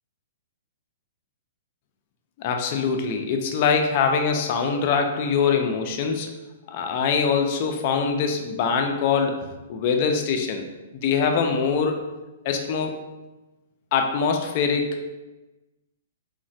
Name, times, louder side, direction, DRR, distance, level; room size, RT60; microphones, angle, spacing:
voice 1, 2.4-6.3 6.7-10.7 10.9-12.0 12.4-13.0 13.9-15.0, left 5 dB, 45° left, 4 dB, 0.4 m, -23 dB
3.0 x 2.1 x 2.6 m, 1.1 s
hypercardioid pair, 125°, 0 cm